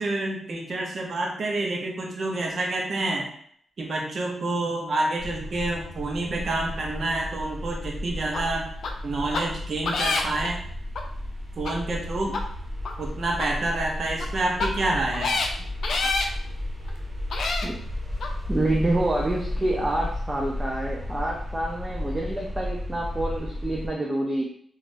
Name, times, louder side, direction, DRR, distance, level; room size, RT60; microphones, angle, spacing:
voice 1, 0.0-3.3 3.8-8.7 9.0-10.6 11.6-12.4 13.0-15.4, right 2 dB, 60° right, 0 dB, 0.7 m, -28 dB
sound 1, 5.2-23.9, left 1 dB, 40° right, 1.4 m, -33 dB
sound 2, 8.3-8.4 8.8-8.9 9.3-9.4 9.8-10.5 10.9-11.0 11.6-11.7 12.3-12.4 12.8-12.9 13.4-13.5 14.1-14.2 14.6-14.7 15.1-15.5 15.8-16.3 16.9-17.0 17.3-17.7 18.2-18.3, left 3 dB, 75° left, 0.4 m, -26 dB
voice 2, 18.5-24.4, right 1 dB, 25° right, -2 dB, 0.5 m, -27 dB
3.1 x 2.4 x 2.5 m, 0.62 s
cardioid pair, 80°, 0 cm